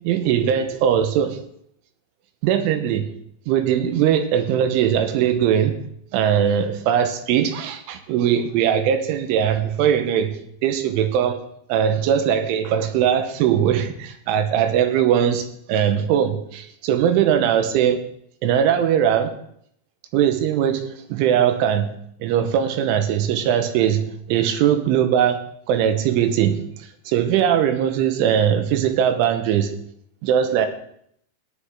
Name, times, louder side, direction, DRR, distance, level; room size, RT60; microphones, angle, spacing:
voice 1, 0.0-1.4 2.4-3.1 3.5-5.8 6.1-10.4 10.6-11.4 11.7-18.0 18.4-19.3 20.1-21.9 22.2-26.6 27.1-29.7 30.2-30.7, right 9 dB, 90° right, 8 dB, 3.4 m, -20 dB
18.0 x 10.0 x 3.7 m, 0.69 s
omnidirectional pair, 5.6 m